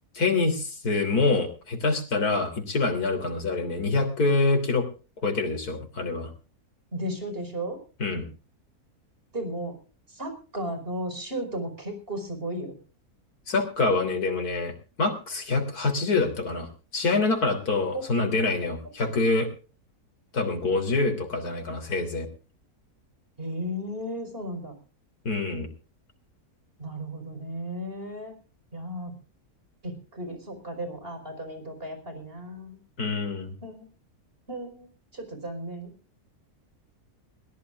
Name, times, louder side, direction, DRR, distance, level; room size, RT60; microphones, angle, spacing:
voice 1, 0.1-4.9 5.2-6.3 8.0-8.3 13.5-14.7 15.0-16.7 16.9-19.5 20.3-22.3 25.3-25.7 33.0-33.5, left 3 dB, 75° left, 5 dB, 3.8 m, -25 dB
voice 2, 6.9-7.8 9.3-9.7 10.1-12.8 17.9-18.0 23.4-24.7 26.8-28.3 28.7-29.1 29.8-32.8 33.6-33.9 34.5-34.9 35.1-35.9, equal, 35° right, 6 dB, 5.2 m, -34 dB
21.5 x 17.5 x 2.5 m, 0.35 s
omnidirectional pair, 1.6 m